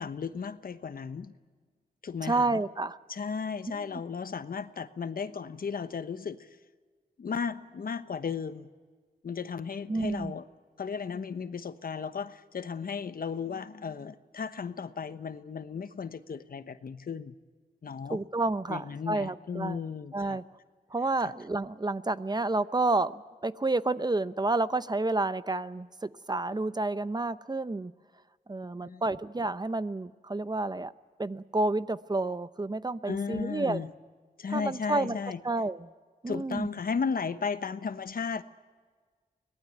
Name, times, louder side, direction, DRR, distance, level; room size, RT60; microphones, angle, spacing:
voice 1, 0.0-1.3 2.0-2.6 3.1-6.5 7.2-8.7 9.2-10.4 10.8-17.3 17.8-18.2 18.7-20.4 21.2-21.3 28.8-29.0 33.1-33.9 34.4-35.4 36.3-38.4, left 6 dB, 65° left, 12 dB, 1.1 m, -35 dB
voice 2, 2.2-3.0 3.7-4.0 9.9-10.3 18.1-19.8 20.1-20.4 20.9-27.9 28.5-30.9 31.2-33.8 34.5-35.2 35.4-35.9 36.2-36.7, right 2 dB, 25° right, 14 dB, 0.8 m, -30 dB
25.0 x 19.0 x 9.2 m, 1.5 s
cardioid pair, 70°, 16 cm